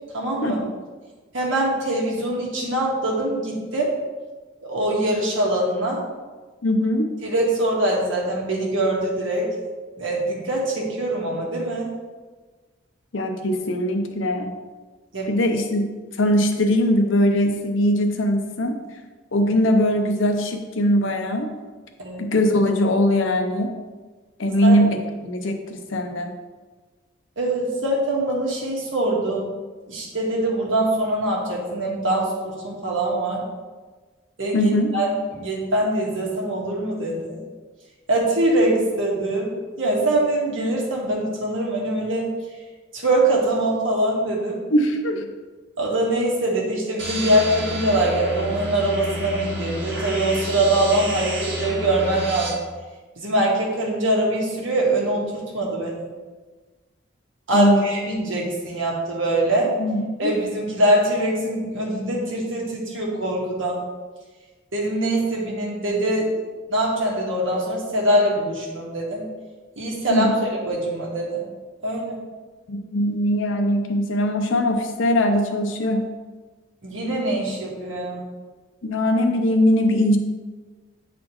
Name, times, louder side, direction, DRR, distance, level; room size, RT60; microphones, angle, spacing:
voice 1, 0.1-0.6 1.3-3.9 4.6-6.0 7.2-9.5 10.0-11.9 15.1-15.3 22.0-22.2 24.6-24.8 27.4-29.5 29.9-33.4 34.4-35.1 35.3-37.4 38.1-42.3 42.9-44.6 45.8-52.6 53.2-56.0 57.5-59.7 60.2-63.8 64.7-66.3 66.7-69.3 69.8-71.4 71.8-72.2 76.8-78.2, right 1 dB, 90° right, -2 dB, 1.5 m, -23 dB
voice 2, 6.6-7.1 13.1-14.5 15.3-15.9 16.2-18.8 19.3-21.5 22.2-23.7 24.4-26.3 34.5-34.9 44.7-45.3 57.5-58.0 59.8-60.3 70.1-70.3 72.7-76.1 78.8-80.2, left 1 dB, 90° left, 5 dB, 0.7 m, -21 dB
sound 1, 47.0-52.5, equal, 70° right, 1.9 m, -30 dB
8.4 x 4.2 x 3.1 m, 1.3 s
head